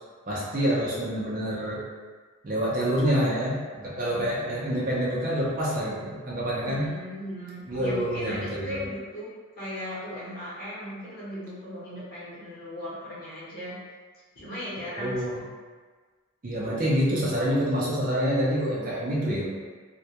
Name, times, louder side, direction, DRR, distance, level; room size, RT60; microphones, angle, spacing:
voice 1, 0.3-1.8 2.4-6.9 7.7-8.8 15.0-15.4 16.4-19.5, equal, 40° right, -6 dB, 0.4 m, -27 dB
voice 2, 6.6-9.3 9.6-13.8 14.4-15.1, left 1 dB, 40° left, -10 dB, 0.8 m, -37 dB
2.1 x 2.1 x 2.7 m, 1.5 s
head